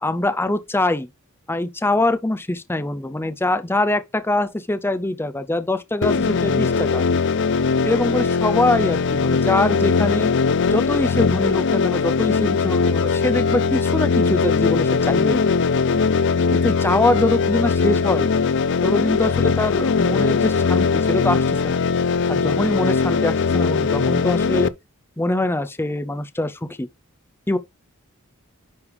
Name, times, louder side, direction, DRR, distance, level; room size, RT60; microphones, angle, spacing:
voice 1, 0.0-1.1 1.5-7.0 7.8-10.3 10.7-15.4 16.5-18.3 18.8-21.8 22.3-24.7 25.2-26.9 27.5-27.6, left 2 dB, 10° left, 0.5 m, -23 dB
sound 1, 6.0-24.7, left 5 dB, 55° left, 0.5 m, -20 dB
9.9 x 3.4 x 4.7 m
head